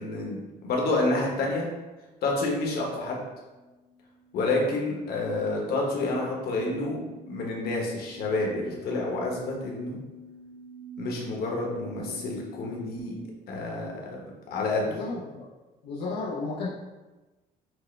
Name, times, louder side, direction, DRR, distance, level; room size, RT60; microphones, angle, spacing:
voice 1, 0.0-1.7 2.2-3.2 4.3-7.0 7.3-10.0 11.0-13.1 13.5-14.2 14.5-14.9, left 2 dB, 65° left, -1 dB, 1.2 m, -29 dB
sound 1, 3.5-13.0, equal, 10° right, 0.9 m, -46 dB
voice 2, 14.8-15.5 15.8-16.7, left 3 dB, 80° left, -5 dB, 0.7 m, -33 dB
6.2 x 2.2 x 3.2 m, 1.2 s
cardioid pair, 110°, 17 cm